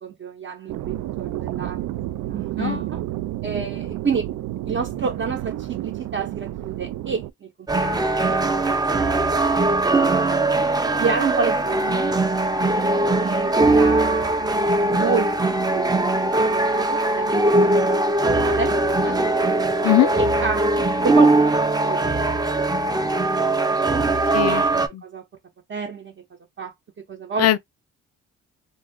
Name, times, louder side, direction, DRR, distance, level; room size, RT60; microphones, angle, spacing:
voice 1, 0.0-1.9 2.3-3.0 3.4-4.3 4.6-9.2 10.1-10.4 11.0-12.1 13.2-14.5 14.8-19.2 20.0-23.3 23.8-24.0 24.3-25.2 25.7-26.1 26.6-27.5, right 5 dB, 40° right, 0.8 m, -30 dB
sound 1, 0.7-7.3, right 14 dB, 75° right, 0.5 m, -30 dB
sound 2, 7.7-24.9, right 2 dB, 15° right, 0.5 m, -20 dB
voice 2, 24.3-24.6 24.9-25.0 27.4-27.6, left 15 dB, 55° left, 0.4 m, -19 dB
2.6 x 2.4 x 3.5 m
cardioid pair, 90°, 30 cm